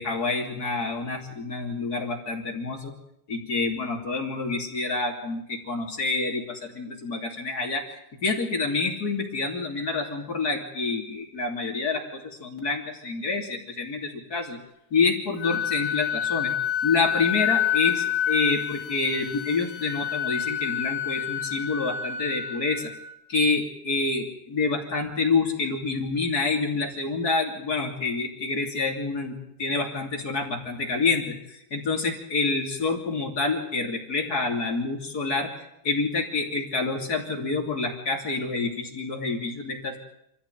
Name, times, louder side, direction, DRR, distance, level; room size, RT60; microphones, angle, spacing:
voice 1, 0.0-2.9 3.3-7.9 8.2-14.6 14.9-16.5 16.8-22.9 23.3-31.3 31.7-35.5 35.8-40.0, left 3 dB, 25° left, 1 dB, 2.6 m, -27 dB
Wind instrument woodwind instrument, 15.4-23.2, left 10 dB, 75° left, 1.7 m, -28 dB
25.0 x 15.5 x 9.3 m, 0.78 s
omnidirectional pair, 5.3 m